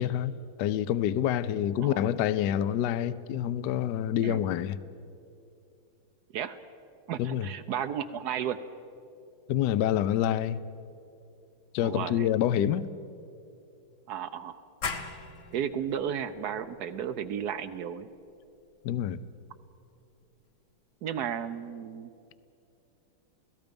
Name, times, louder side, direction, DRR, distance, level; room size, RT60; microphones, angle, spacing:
voice 1, 0.0-4.8 7.2-7.5 9.5-10.6 11.7-12.9 18.8-19.2, left 11 dB, 70° left, 1.0 m, -27 dB
voice 2, 7.1-8.6 11.8-12.3 14.1-14.6 15.5-18.1 21.0-22.1, right 8 dB, 70° right, 0.9 m, -33 dB
sound 1, 14.8-20.2, left 4 dB, 45° left, 1.3 m, -42 dB
29.0 x 17.5 x 5.3 m
omnidirectional pair, 2.4 m